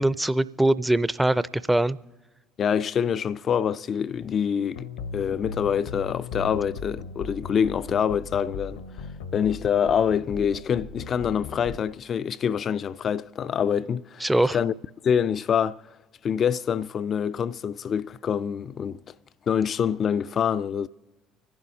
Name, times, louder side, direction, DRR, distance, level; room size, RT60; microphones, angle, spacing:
voice 1, 0.0-2.0 14.2-14.6, right 1 dB, 10° right, 0.5 m, -22 dB
voice 2, 2.6-8.8 9.3-14.7 15.0-15.8 16.2-19.0 19.5-20.9, left 8 dB, 45° left, 0.4 m, -25 dB
sound 1, 4.7-11.8, left 5 dB, 75° left, 1.0 m, -38 dB
25.5 x 11.0 x 2.8 m
figure-of-eight pair, 55°, 0 cm